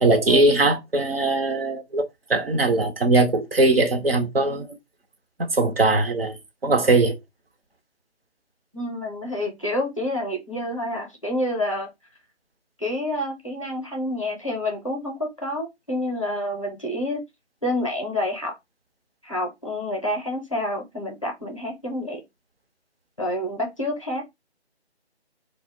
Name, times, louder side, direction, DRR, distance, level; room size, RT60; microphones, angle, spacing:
voice 1, 0.0-4.7 5.4-7.2, right 2 dB, 60° right, 0.6 m, -20 dB
voice 2, 8.7-11.9 12.8-17.2 17.6-18.5 19.2-22.2 23.2-24.2, left 1 dB, 30° left, 0.5 m, -28 dB
2.2 x 2.1 x 3.3 m
figure-of-eight pair, 155°, 34 cm